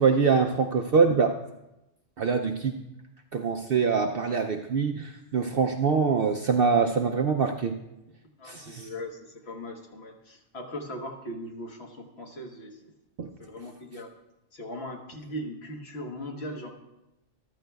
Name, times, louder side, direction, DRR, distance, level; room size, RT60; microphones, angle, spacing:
voice 1, 0.0-1.3 2.2-2.7 3.3-7.8 8.4-8.9 13.2-13.3, right 5 dB, 60° right, 4 dB, 0.6 m, -24 dB
voice 2, 8.4-12.9 13.4-14.1 14.5-16.7, left 1 dB, 55° left, 2 dB, 1.5 m, -39 dB
14.0 x 12.5 x 2.3 m, 0.93 s
omnidirectional pair, 1.3 m